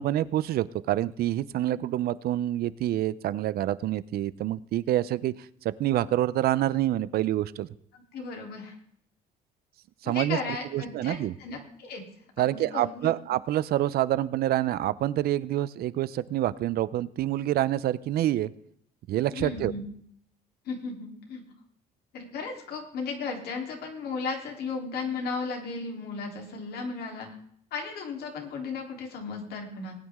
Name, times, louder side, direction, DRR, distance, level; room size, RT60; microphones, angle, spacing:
voice 1, 0.0-5.3 5.6-7.7 10.0-10.4 10.7-11.4 12.4-18.5 19.1-19.7, right 13 dB, 65° right, 18 dB, 0.7 m, -27 dB
voice 2, 8.1-8.7 10.0-12.0 12.4-13.1 19.3-19.9 20.6-21.4 22.1-27.3 27.7-29.9, left 4 dB, 70° left, 2 dB, 3.5 m, -35 dB
19.5 x 9.5 x 3.7 m, 0.65 s
cardioid pair, 110°, 17 cm